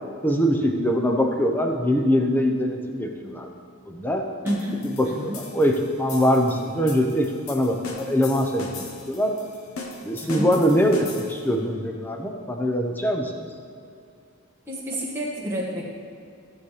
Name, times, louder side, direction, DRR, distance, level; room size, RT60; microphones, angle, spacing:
voice 1, 0.2-3.5 3.9-4.3 5.0-9.4 10.0-13.3, equal, 10° left, 2 dB, 0.7 m, -23 dB
voice 2, 4.4-5.4 10.2-10.5 14.7-15.8, equal, 10° right, -5 dB, 1.6 m, -29 dB
sound 1, 4.5-11.6, left 3 dB, 70° left, 1.0 m, -38 dB
14.5 x 7.2 x 3.2 m, 2.4 s
head